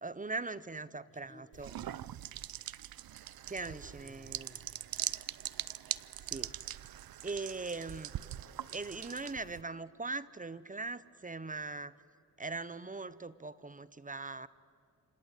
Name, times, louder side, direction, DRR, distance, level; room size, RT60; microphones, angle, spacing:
voice 1, 0.0-1.7 3.5-4.5 6.3-6.5 7.2-8.1 8.7-11.9 12.4-14.5, right 3 dB, 20° right, 17 dB, 0.7 m, -40 dB
voice 2, 1.1-2.0 3.6-5.0 8.2-9.0, left 2 dB, 20° left, 4 dB, 2.9 m, -59 dB
sound 1, 1.5-9.6, right 12 dB, 65° right, 0.6 m, -42 dB
27.5 x 26.0 x 8.2 m, 2.3 s
cardioid pair, 90°, 38 cm